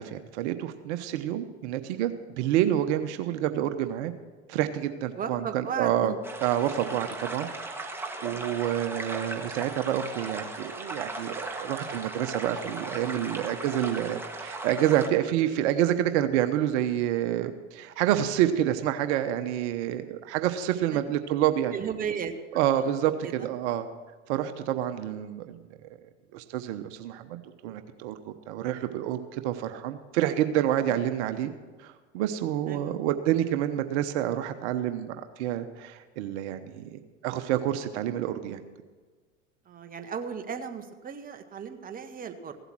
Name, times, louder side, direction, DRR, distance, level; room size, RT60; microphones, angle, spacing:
voice 1, 0.0-4.1 4.5-6.1 6.4-7.5 8.2-21.8 22.5-23.9 24.3-26.0 26.3-31.5 31.8-38.6, right 11 dB, 60° right, 9 dB, 1.0 m, -28 dB
voice 2, 5.1-6.2 20.9-21.0 21.7-22.3 22.8-23.5 32.7-33.0 39.7-42.6, right 7 dB, 20° right, 7 dB, 1.1 m, -36 dB
sound 1, 6.2-15.1, right 2 dB, 5° right, 1.5 m, -37 dB
15.5 x 8.0 x 6.2 m, 1.4 s
hypercardioid pair, 95°, 38 cm